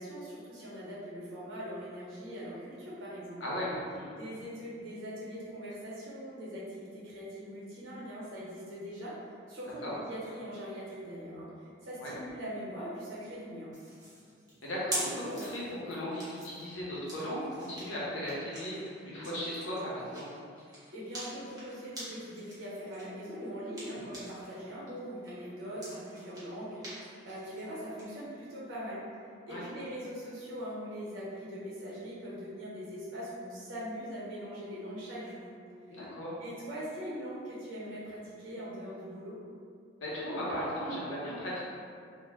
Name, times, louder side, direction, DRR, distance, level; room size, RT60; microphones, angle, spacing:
voice 1, 0.0-3.4 4.2-9.1 9.5-13.7 20.9-29.0 29.4-35.5 35.9-36.0 36.4-39.4, equal, 90° right, -8 dB, 0.8 m, -41 dB
voice 2, 3.4-4.1 9.8-9.9 12.0-12.2 14.6-20.3 23.9-24.1 29.5-29.8 35.9-36.3 40.0-41.6, equal, 80° left, -7 dB, 0.7 m, -36 dB
sound 1, 13.7-24.5 24.9-28.0, right 1 dB, 20° right, 0.6 m, -44 dB
2.1 x 2.0 x 3.2 m, 2.3 s
head